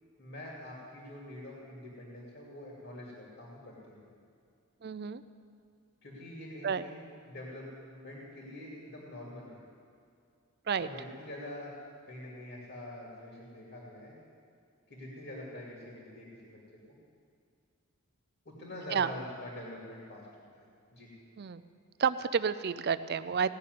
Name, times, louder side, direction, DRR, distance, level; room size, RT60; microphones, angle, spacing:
voice 1, 0.2-4.0 6.0-9.6 10.8-11.7 12.0-14.2 14.9-16.4 16.9-17.0 18.4-20.3 20.5-20.7 20.9-21.1, left 1 dB, 50° left, -4 dB, 2.5 m, -45 dB
voice 2, 4.8-5.2 6.6-6.9 10.7-10.9 18.9-19.1 21.4-21.6 22.0-23.5, right 6 dB, 45° right, 14 dB, 0.4 m, -30 dB
17.5 x 6.7 x 9.5 m, 2.4 s
head